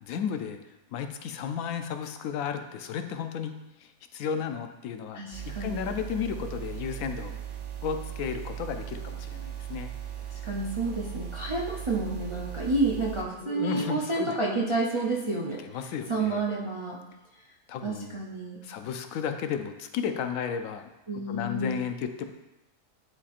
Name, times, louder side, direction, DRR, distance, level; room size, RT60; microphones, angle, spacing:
voice 1, 0.0-0.6 0.9-5.2 5.6-7.4 7.8-9.9 13.4-14.3 15.7-16.4 17.7-18.2 18.6-20.9 21.3-22.2, left 7 dB, 90° left, 6 dB, 1.0 m, -33 dB
voice 2, 5.1-5.9 10.4-17.0 17.8-18.6 21.1-21.8, right 2 dB, 40° right, -3 dB, 0.4 m, -30 dB
sound 1, 5.3-13.2, right 10 dB, 65° right, 1.0 m, -38 dB
9.9 x 4.2 x 2.4 m, 0.99 s
omnidirectional pair, 1.4 m